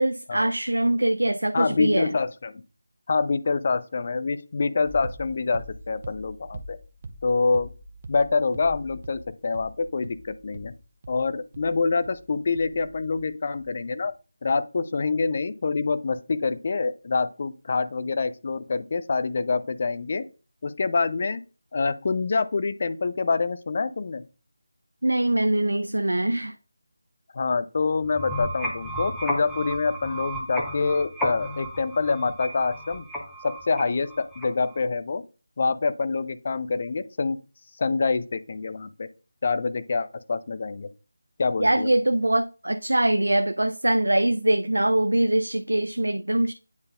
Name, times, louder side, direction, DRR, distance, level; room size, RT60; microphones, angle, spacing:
voice 1, 0.0-2.1 25.0-26.6 41.6-46.5, right 1 dB, 75° right, 0.4 m, -23 dB
voice 2, 1.5-2.6 3.1-6.8 7.2-7.7 8.1-10.7 11.1-14.1 14.4-20.3 20.6-21.4 21.7-24.2 27.3-33.0 33.4-35.2 35.6-37.4 37.8-39.1 39.4-40.9 41.4-41.9, left 4 dB, 40° left, 0.5 m, -26 dB
sound 1, 4.9-13.3 13.5-14.1, right 1 dB, 35° right, 0.7 m, -43 dB
sound 2, 28.0-34.8, equal, 5° left, 1.0 m, -33 dB
9.5 x 3.9 x 2.6 m
figure-of-eight pair, 160°, 0 cm